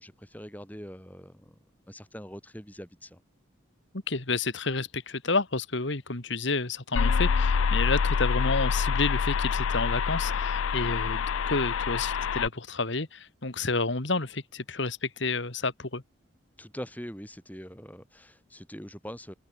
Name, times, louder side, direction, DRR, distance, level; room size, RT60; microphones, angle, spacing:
voice 1, 0.0-1.6 1.9-3.2 16.6-19.3, equal, 10° left, 6.2 m, -43 dB
voice 2, 4.1-16.0, left 3 dB, 65° left, 2.0 m, -30 dB
sound 1, 7.0-12.5, left 5 dB, 85° left, 0.5 m, -26 dB
open air
head